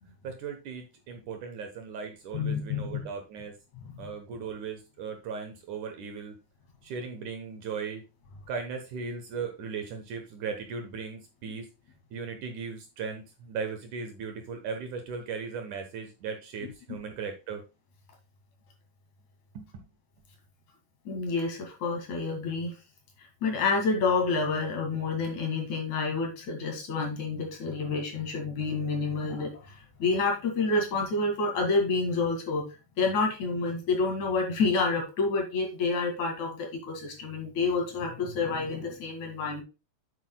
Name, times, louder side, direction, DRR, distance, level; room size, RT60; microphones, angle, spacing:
voice 1, 0.2-3.6 4.0-6.3 6.8-8.0 8.5-11.7 12.1-17.6 19.5-19.7, right 5 dB, 65° right, 5 dB, 2.2 m, -37 dB
voice 2, 2.3-2.9 3.8-4.1 21.0-22.7 23.2-32.6 33.0-39.6, left 4 dB, 55° left, 2 dB, 3.2 m, -29 dB
8.4 x 8.1 x 2.3 m, 0.29 s
omnidirectional pair, 4.3 m